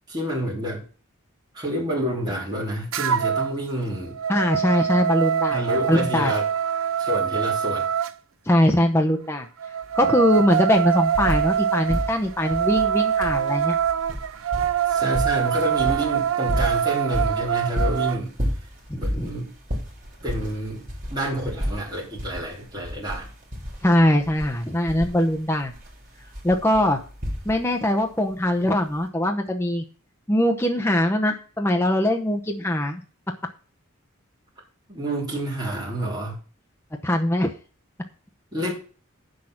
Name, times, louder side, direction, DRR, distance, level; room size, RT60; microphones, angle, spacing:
voice 1, 0.1-0.8 1.5-4.2 5.5-6.5 7.0-7.9 14.9-18.3 18.9-19.5 20.2-23.3 34.9-36.4 38.5-38.7, equal, 20° right, -4 dB, 3.2 m, -28 dB
sound 1, 2.9-3.5 3.9-8.1 9.6-18.2, right 9 dB, 75° right, 0.5 m, -24 dB
voice 2, 4.3-5.6 5.9-6.3 8.5-9.5 10.0-13.8 18.9-19.3 23.8-25.7 26.4-27.0 27.4-29.8 30.3-33.0 37.0-37.5, left 1 dB, 10° left, 2 dB, 0.9 m, -21 dB
sound 2, 9.8-9.9 10.2-11.6 11.9-27.9 28.9-29.0, equal, 40° right, 3.3 m, -31 dB
8.2 x 6.5 x 5.9 m, 0.37 s
head